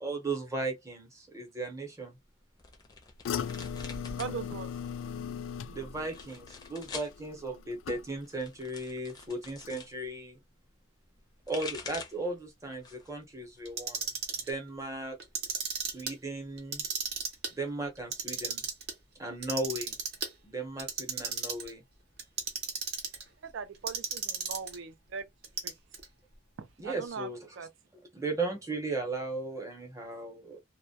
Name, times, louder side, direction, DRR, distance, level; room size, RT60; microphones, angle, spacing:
voice 1, 0.0-2.1 5.7-10.4 11.5-14.1 14.4-15.2 15.7-16.8 17.6-18.6 19.2-19.9 20.4-21.8 26.8-27.4 28.1-30.6, right 2 dB, 15° right, 0.7 m, -36 dB
sound 1, 2.6-4.4 4.7-5.3 6.0-7.1 8.2-9.9 11.2-12.3 12.7-13.2 13.6-14.5, left 4 dB, 20° left, 0.4 m, -45 dB
sound 2, 3.2-8.5 8.8-9.2 9.6-9.7, left 7 dB, 85° left, 0.3 m, -39 dB
voice 2, 4.2-4.7 12.2-12.3 23.4-25.3 25.6-25.7 26.6-27.7, right 6 dB, 80° right, 0.4 m, -40 dB
Clock, 13.7-14.5 15.2-16.1 16.6-17.5 18.0-18.9 19.4-20.3 20.8-21.7 22.2-23.2 23.9-24.8 25.4-26.0, right 5 dB, 55° right, 0.7 m, -34 dB
2.2 x 2.1 x 2.7 m
head